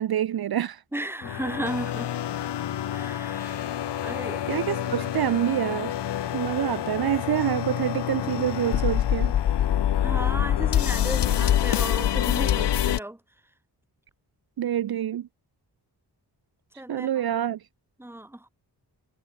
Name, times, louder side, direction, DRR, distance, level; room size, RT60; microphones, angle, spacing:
voice 1, 0.0-0.8 4.5-6.0 6.3-9.3 14.6-15.3 16.9-17.6, right 11 dB, 65° right, 0.6 m, -26 dB
voice 2, 0.9-2.2 2.9-3.7 4.0-4.5 10.0-13.2 16.7-17.3 18.0-18.5, right 1 dB, 5° right, 1.6 m, -35 dB
sound 1, 1.2-13.0, left 11 dB, 80° left, 0.8 m, -26 dB
wide cardioid pair, 150°, 41 cm